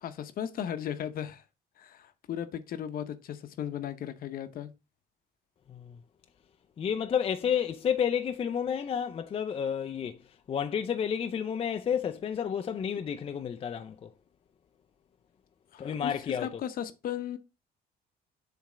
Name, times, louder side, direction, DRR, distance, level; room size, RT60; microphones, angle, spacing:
voice 1, 0.0-1.4 1.8-4.7 15.7-17.4, left 9 dB, 60° left, 0.8 m, -36 dB
voice 2, 6.8-10.2 10.5-14.1 15.8-16.5, left 8 dB, 35° left, 0.5 m, -30 dB
7.3 x 3.4 x 4.9 m
cardioid pair, 110°, 17 cm